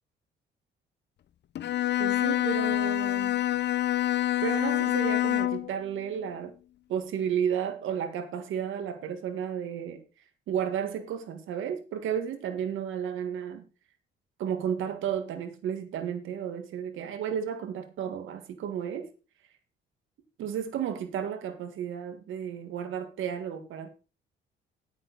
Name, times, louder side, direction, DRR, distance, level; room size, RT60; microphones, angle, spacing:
Bowed string instrument, 1.5-5.7, left 14 dB, 60° left, 0.7 m, -26 dB
voice 1, 2.0-3.4 4.4-6.5 6.9-10.0 10.5-13.6 14.4-19.1 20.4-23.9, right 8 dB, 80° right, 1.7 m, -33 dB
9.1 x 9.0 x 4.1 m
cardioid pair, 90°, 20 cm